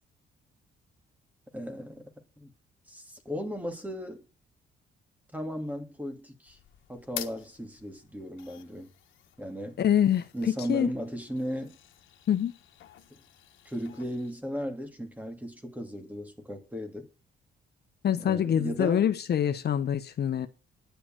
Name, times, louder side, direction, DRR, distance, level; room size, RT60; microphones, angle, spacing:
voice 1, 1.5-2.1 2.4-2.5 2.9-4.2 5.3-6.6 6.9-8.9 9.4-9.8 10.3-11.8 13.1-13.2 13.6-17.1 18.2-19.1, equal, 10° right, 2.6 m, -36 dB
sound 1, 6.4-14.3, left 12 dB, 80° left, 1.4 m, -48 dB
voice 2, 9.8-10.3 10.7-10.9 12.3-12.5 18.0-20.5, left 9 dB, 55° left, 1.0 m, -25 dB
10.5 x 7.0 x 8.9 m
cardioid pair, 90°, 20 cm